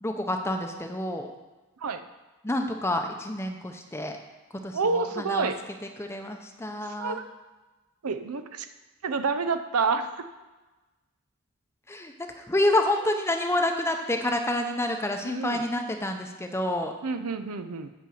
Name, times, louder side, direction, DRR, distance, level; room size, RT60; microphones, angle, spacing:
voice 1, 0.0-1.3 2.4-4.1 4.6-5.5 6.0-7.2 11.9-16.9, left 1 dB, 10° left, 4 dB, 0.7 m, -28 dB
voice 2, 4.7-5.5 6.8-7.2 8.0-8.7 9.0-10.3 15.2-15.6 17.0-17.9, right 4 dB, 80° right, 9 dB, 0.6 m, -28 dB
8.4 x 5.4 x 7.7 m, 1.2 s
head